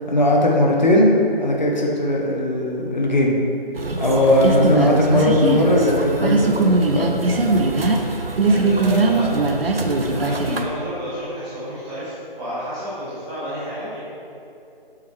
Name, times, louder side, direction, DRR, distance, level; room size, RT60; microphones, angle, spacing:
voice 1, 0.1-3.4 4.0-7.4, left 1 dB, 50° left, -2 dB, 0.8 m, -18 dB
sound 1, 3.8-10.6, right 2 dB, 75° right, 0.6 m, -20 dB
voice 2, 3.9-4.5 7.7-14.0, equal, 5° right, -15 dB, 1.1 m, -31 dB
7.1 x 4.9 x 3.2 m, 2.7 s
figure-of-eight pair, 155°, 29 cm